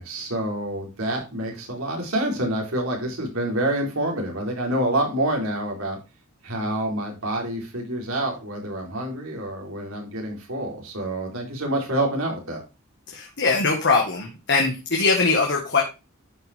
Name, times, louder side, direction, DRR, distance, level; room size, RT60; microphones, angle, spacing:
voice 1, 0.0-6.0 6.4-12.6, right 1 dB, 75° right, -1 dB, 4.3 m, -27 dB
voice 2, 13.1-15.8, left 4 dB, 60° left, 1 dB, 1.8 m, -21 dB
12.0 x 5.9 x 3.6 m, 0.27 s
head